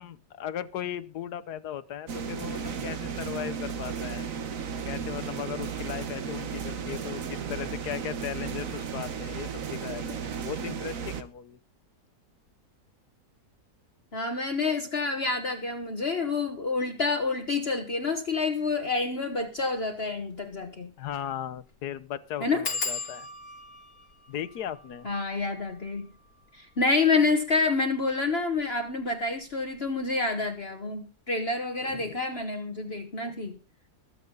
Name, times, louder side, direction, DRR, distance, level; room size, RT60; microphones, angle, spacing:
voice 1, 0.0-4.3 4.8-11.6 21.0-23.3 24.3-25.1 31.8-32.2 33.2-33.3, left 10 dB, 80° left, 15 dB, 1.4 m, -37 dB
sound 1, 2.1-11.2, right 6 dB, 60° right, 1.5 m, -34 dB
voice 2, 14.1-20.9 22.4-22.6 25.0-26.1 26.5-33.6, left 3 dB, 40° left, 4 dB, 1.5 m, -28 dB
sound 2, 19.5-19.7 20.1-20.2 20.4-20.5 21.1-21.3 21.6-21.7 22.6-27.9 28.6-29.1 29.4-29.8 30.0-30.1, left 4 dB, 60° left, 2.6 m, -39 dB
22.0 x 7.5 x 4.0 m, 0.33 s
omnidirectional pair, 1.7 m